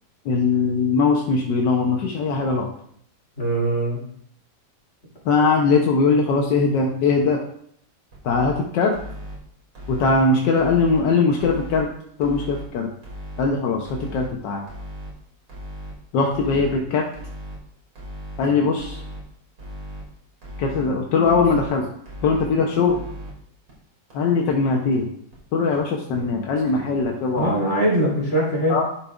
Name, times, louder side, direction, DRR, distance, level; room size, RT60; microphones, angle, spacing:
voice 1, 0.3-2.7 5.3-7.4 8.2-8.9 9.9-11.9 12.2-12.9 13.4-13.9 14.1-14.7 16.1-17.0 18.4-19.0 20.6-21.8 22.2-23.0 24.1-25.1 25.5-27.5 28.7-28.8, left 4 dB, 80° left, 1 dB, 1.5 m, -20 dB
voice 2, 3.4-4.0 27.3-28.8, right 1 dB, 40° left, -5 dB, 3.3 m, -21 dB
sound 1, 8.1-8.5 8.9-9.4 9.7-10.2 10.6-11.0 11.4-11.8 12.2-12.6 13.0-13.5 13.9-14.3 14.7-15.1 15.5-15.9 16.3-16.7 17.1-17.6 18.0-18.4 18.8-19.2 19.6-20.0 20.4-20.8 21.2-21.7 22.1-22.5 22.9-23.3 23.7-23.8 24.1-24.2 24.5-24.6 24.9-25.0 25.3-25.4 25.7-25.8 26.1-26.2 26.6-26.7 27.0-27.1 27.4-27.5, equal, 85° right, 3.2 m, -36 dB
11.5 x 7.1 x 2.4 m, 0.67 s
omnidirectional pair, 1.9 m